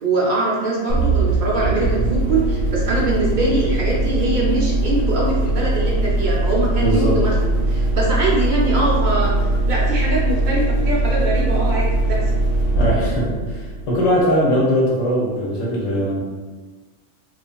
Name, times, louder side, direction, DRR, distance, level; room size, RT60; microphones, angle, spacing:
voice 1, 0.0-7.3 7.6-12.2, right 2 dB, 55° right, -5 dB, 0.5 m, -22 dB
sound 1, 0.9-14.4, right 2 dB, 90° right, 0.9 m, -20 dB
voice 2, 6.8-7.2 12.7-16.2, equal, 90° left, -4 dB, 1.1 m, -20 dB
2.6 x 2.4 x 2.2 m, 1.3 s
omnidirectional pair, 1.3 m